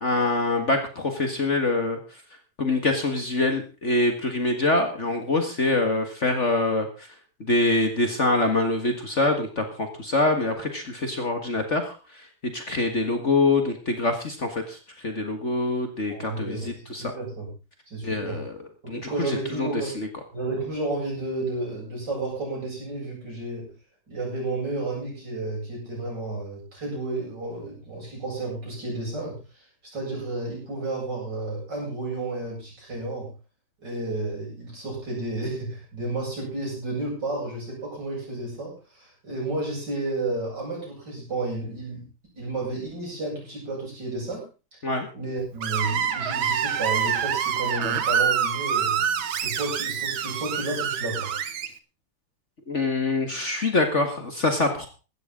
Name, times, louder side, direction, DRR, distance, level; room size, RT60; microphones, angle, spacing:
voice 1, 0.0-2.0 2.6-7.1 7.4-12.0 12.4-14.8 15.0-17.0 18.0-18.5 18.9-20.1 44.8-45.1 52.7-54.9, left 2 dB, 40° left, 5 dB, 1.9 m, -25 dB
voice 2, 16.1-17.5 17.9-18.4 18.8-20.0 20.3-23.7 24.1-29.7 29.9-33.3 33.8-42.1 42.4-44.5 44.7-44.8 45.1-51.3, right 2 dB, 60° right, -3 dB, 8.3 m, -32 dB
Screech, 45.6-51.7, right 8 dB, 80° right, 1.9 m, -26 dB
16.5 x 13.0 x 3.8 m, 0.32 s
omnidirectional pair, 2.1 m